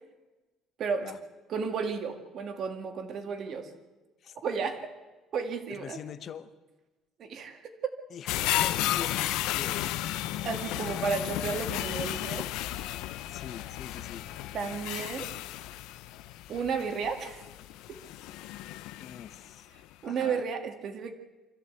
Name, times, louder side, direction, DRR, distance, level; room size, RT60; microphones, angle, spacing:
voice 1, 0.8-1.1 1.5-3.7 4.4-4.9 5.3-6.0 7.2-7.7 10.4-12.5 14.5-15.3 16.5-17.4 17.9-18.0 20.0-21.1, right 5 dB, 40° right, 7 dB, 2.0 m, -33 dB
voice 2, 5.7-6.5 8.1-9.9 10.8-11.1 13.3-14.3 19.0-19.7 20.0-20.4, left 8 dB, 40° left, 12 dB, 1.0 m, -44 dB
sound 1, 8.3-19.5 19.9-20.0, left 14 dB, 85° left, 0.8 m, -33 dB
25.0 x 14.0 x 8.2 m, 1.2 s
cardioid pair, 170°, 0 cm